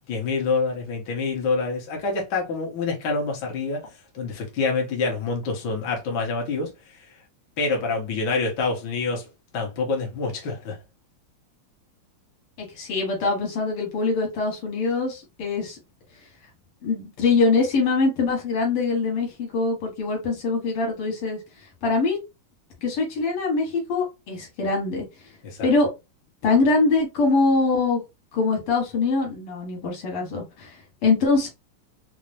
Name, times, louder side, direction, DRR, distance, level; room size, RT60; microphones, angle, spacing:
voice 1, 0.1-3.8 4.2-6.7 7.6-9.3 9.5-10.8 25.4-25.7, left 4 dB, 60° left, 1.6 m, -26 dB
voice 2, 12.6-15.8 16.8-21.4 21.8-22.2 22.8-25.0 25.6-25.9 26.4-28.0 28.3-30.7 31.0-31.5, left 3 dB, 85° left, 2.2 m, -23 dB
4.6 x 2.0 x 2.6 m
omnidirectional pair, 2.4 m